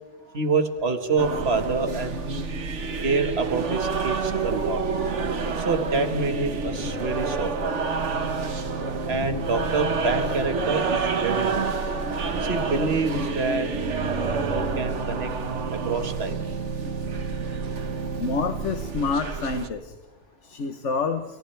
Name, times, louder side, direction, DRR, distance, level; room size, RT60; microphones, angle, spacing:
voice 1, 0.3-2.5 3.0-4.8 5.6-7.9 9.1-12.0 12.5-13.7 14.0-15.3 15.8-16.4, right 4 dB, 60° right, 7 dB, 2.0 m, -27 dB
sound 1, 1.2-19.7, right 4 dB, 85° right, 1.7 m, -28 dB
voice 2, 18.2-19.8 20.5-21.2, left 4 dB, 85° left, 7 dB, 1.5 m, -27 dB
28.0 x 28.0 x 3.4 m, 1.1 s
omnidirectional pair, 1.2 m